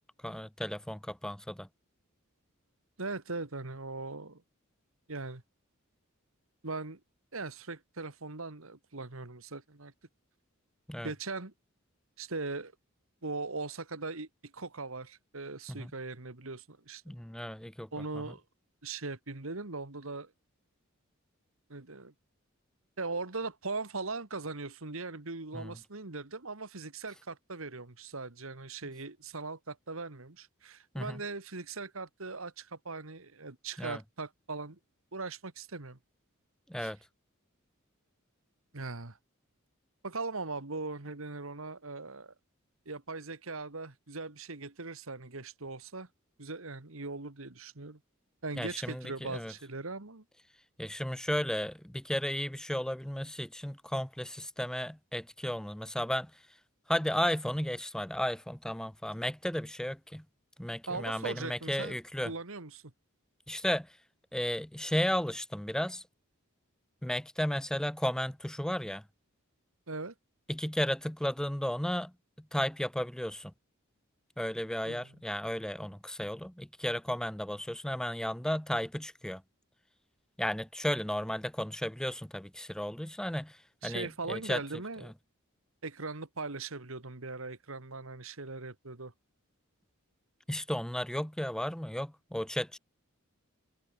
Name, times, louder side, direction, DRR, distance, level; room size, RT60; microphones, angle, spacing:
voice 1, 0.2-1.7 10.9-11.1 15.7-15.9 17.1-17.9 25.5-25.7 30.9-31.2 33.8-34.0 36.7-37.0 48.6-49.5 50.8-56.3 56.9-60.2 60.6-62.3 63.5-63.9 64.3-66.0 67.0-69.0 70.5-72.1 72.5-73.5 74.4-79.4 80.4-84.6 85.0-85.1 90.5-92.8, equal, 5° left, 0.6 m, -34 dB
voice 2, 3.0-4.4 5.1-5.4 6.6-7.0 7.3-9.9 11.0-11.5 12.2-12.7 13.2-17.0 17.9-18.4 18.8-20.3 21.7-22.1 23.0-34.8 35.1-36.0 36.8-36.9 38.7-39.2 40.0-42.3 42.9-46.1 46.4-48.0 48.4-50.2 60.9-62.0 62.2-62.8 69.9-70.1 74.8-75.2 83.8-85.1 85.8-89.1, right 3 dB, 70° right, 2.0 m, -40 dB
head